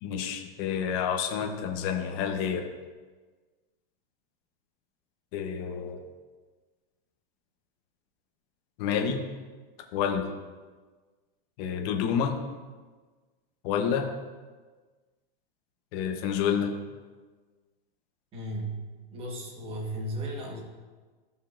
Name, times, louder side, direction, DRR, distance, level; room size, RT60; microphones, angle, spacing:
voice 1, 0.0-2.7 5.3-6.0 8.8-9.2 9.9-10.3 11.6-12.4 13.6-14.1 15.9-16.8, left 7 dB, 35° left, 3 dB, 0.9 m, -29 dB
voice 2, 18.3-18.8 19.1-20.6, right 1 dB, 20° right, 0 dB, 1.3 m, -35 dB
14.0 x 5.4 x 2.5 m, 1.4 s
supercardioid pair, 160°, 30 cm